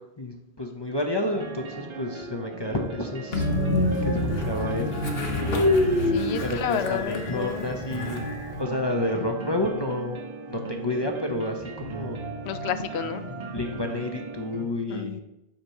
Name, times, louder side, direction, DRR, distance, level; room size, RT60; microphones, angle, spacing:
voice 1, 0.2-3.5 4.1-4.9 6.4-10.2 10.5-12.2 13.5-15.2, left 1 dB, 30° left, 3 dB, 0.5 m, -30 dB
sound 1, 1.3-14.7, right 3 dB, 35° right, 0.6 m, -38 dB
Train, 3.3-8.6, left 1 dB, 70° left, 1.2 m, -26 dB
voice 2, 6.1-7.7 12.5-13.3 14.9-15.2, left 9 dB, 85° left, 11 dB, 0.8 m, -31 dB
8.0 x 2.9 x 5.6 m, 0.91 s
omnidirectional pair, 1.1 m